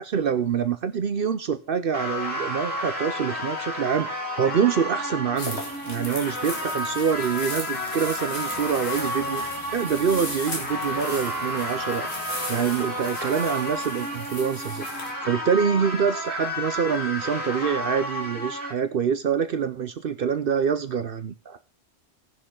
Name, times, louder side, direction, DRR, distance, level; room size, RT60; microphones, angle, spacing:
voice 1, 0.0-4.1 4.4-5.6 5.9-9.4 9.7-12.1 12.5-14.9 15.2-21.6, right 7 dB, 60° right, 11 dB, 0.8 m, -25 dB
sound 1, 1.9-18.7, equal, 10° left, 3.7 m, -31 dB
sound 2, 5.4-15.1, left 2 dB, 85° left, 2.7 m, -36 dB
18.5 x 6.5 x 3.8 m, 0.37 s
omnidirectional pair, 1.1 m